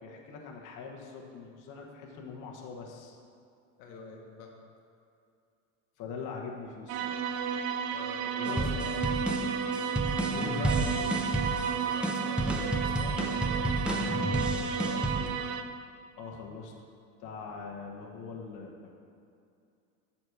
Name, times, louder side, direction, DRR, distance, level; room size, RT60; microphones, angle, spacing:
voice 1, 0.0-3.2 6.0-7.3 8.4-8.7 10.3-11.1 16.2-16.9 17.2-18.9, left 4 dB, 50° left, -1 dB, 1.2 m, -42 dB
voice 2, 3.8-4.5 7.9-9.0 9.4-9.7 11.8-15.3, left 4 dB, 80° left, 0 dB, 1.4 m, -47 dB
sound 1, 6.9-15.6, right 6 dB, 65° right, 0.7 m, -32 dB
sound 2, 8.4-15.3, right 1 dB, 5° right, 0.6 m, -31 dB
7.7 x 4.3 x 6.5 m, 2.5 s
supercardioid pair, 110°, 40 cm